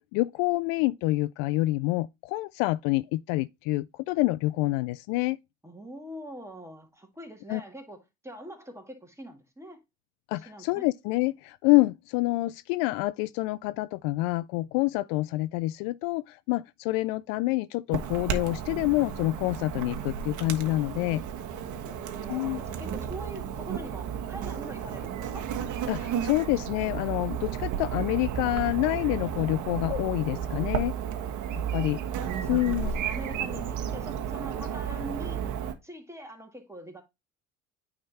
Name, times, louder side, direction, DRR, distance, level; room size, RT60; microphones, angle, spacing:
voice 1, 0.1-5.4 7.5-7.6 10.3-21.2 22.3-22.6 25.9-31.0 31.5-32.0 32.5-32.9, left 19 dB, 60° left, 0.5 m, -27 dB
voice 2, 5.6-9.8 10.3-10.9 21.7-25.5 31.5-35.5 35.8-37.0, right 1 dB, 5° right, 2.1 m, -43 dB
Chirp tweet / Buzz, 17.9-35.7, right 8 dB, 50° right, 1.3 m, -33 dB
9.2 x 3.7 x 4.2 m
hypercardioid pair, 65°, 38 cm